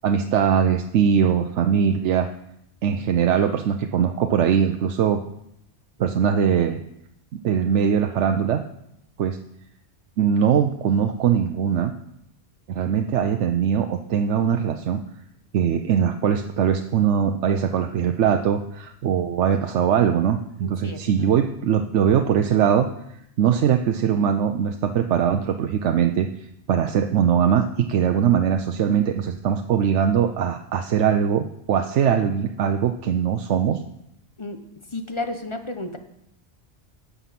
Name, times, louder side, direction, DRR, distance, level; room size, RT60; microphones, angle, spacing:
voice 1, 0.0-2.3 2.8-5.2 6.0-6.8 7.3-8.6 9.2-9.4 10.2-11.9 12.7-15.0 15.5-22.9 23.4-26.3 26.7-33.8, right 8 dB, 85° right, 6 dB, 1.0 m, -21 dB
voice 2, 20.6-21.3 34.4-34.6 34.9-36.0, left 2 dB, 30° left, 6 dB, 0.8 m, -32 dB
11.0 x 7.1 x 5.8 m, 0.78 s
omnidirectional pair, 1.2 m